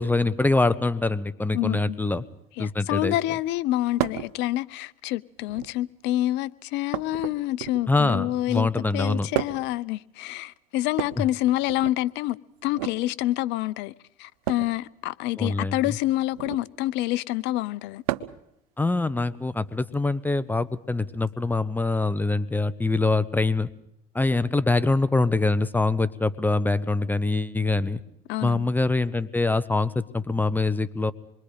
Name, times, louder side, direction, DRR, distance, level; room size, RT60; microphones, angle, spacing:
voice 1, 0.0-2.2 2.6-3.1 7.9-9.3 11.2-11.3 15.4-16.0 18.8-23.7 24.1-28.0 28.4-31.1, left 2 dB, 10° left, 1.2 m, -24 dB
voice 2, 1.5-2.0 2.6-12.4 12.6-13.9 14.2-18.0 28.3-28.7, left 15 dB, 70° left, 0.8 m, -27 dB
sound 1, 4.0-4.3 5.4-5.9 6.9-8.0 9.3-9.8 10.9-12.0 12.7-13.0 14.4-14.8 16.3-16.7 18.1-18.5 19.9-20.0 21.3-21.4, right 16 dB, 85° right, 0.9 m, -32 dB
27.0 x 22.0 x 5.2 m
supercardioid pair, 80°, 19 cm